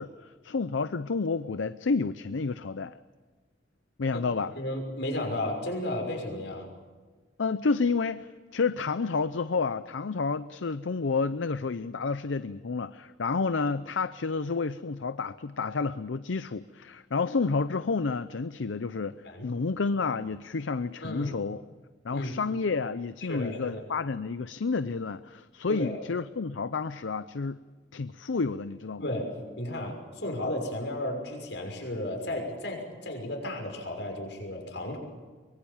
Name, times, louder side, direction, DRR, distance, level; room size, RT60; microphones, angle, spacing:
voice 1, 0.0-2.9 4.0-4.5 7.4-19.1 19.4-21.6 22.0-27.6 27.9-29.0, left 4 dB, 90° left, 13 dB, 0.6 m, -30 dB
voice 2, 4.6-6.7 19.2-19.5 21.0-21.3 22.1-22.4 23.3-23.8 25.7-26.0 29.0-29.3 29.6-35.0, left 1 dB, 75° left, 3 dB, 6.1 m, -33 dB
24.0 x 22.5 x 7.2 m, 1.4 s
head